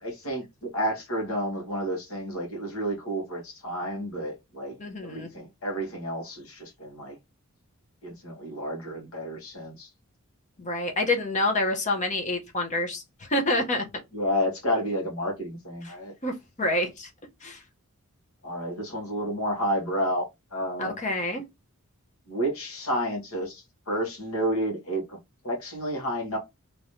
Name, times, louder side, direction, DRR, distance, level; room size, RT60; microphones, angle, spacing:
voice 1, 0.0-7.2 8.0-9.9 14.1-16.1 18.4-20.3 20.5-20.9 22.3-25.2 25.4-26.4, equal, 70° left, 1.6 m, -30 dB
voice 2, 4.8-5.3 10.6-13.9 15.8-15.9 16.2-17.1 17.4-17.6 20.8-21.4, left 1 dB, 35° left, 0.9 m, -27 dB
3.2 x 3.1 x 2.7 m
head